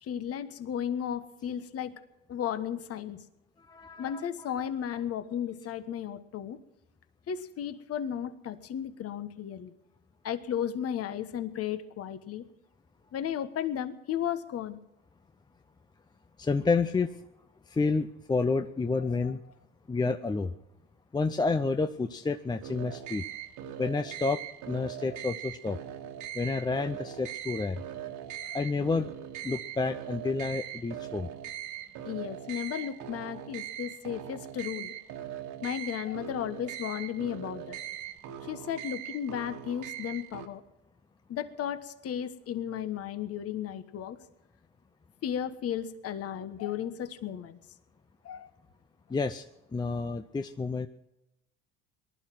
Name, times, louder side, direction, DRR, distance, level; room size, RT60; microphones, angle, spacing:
voice 1, 0.0-1.9 2.3-3.2 4.0-6.6 7.3-9.7 10.2-12.5 13.1-14.8 19.0-19.3 28.4-28.6 32.0-34.9 35.6-37.8 38.4-40.6 41.3-44.2 45.2-47.6 48.2-48.5, left 9 dB, 45° left, 12 dB, 1.3 m, -34 dB
voice 2, 3.6-4.3 4.6-4.7 16.4-17.1 17.7-19.4 19.9-20.5 21.1-23.2 23.8-24.4 24.7-25.8 26.3-27.8 28.5-29.1 29.4-31.3 49.1-49.5 49.7-50.9, left 4 dB, 15° left, 9 dB, 0.6 m, -29 dB
sound 1, 22.6-40.5, right 11 dB, 65° right, 1.8 m, -41 dB
19.0 x 12.0 x 6.1 m, 0.92 s
supercardioid pair, 95°, 33 cm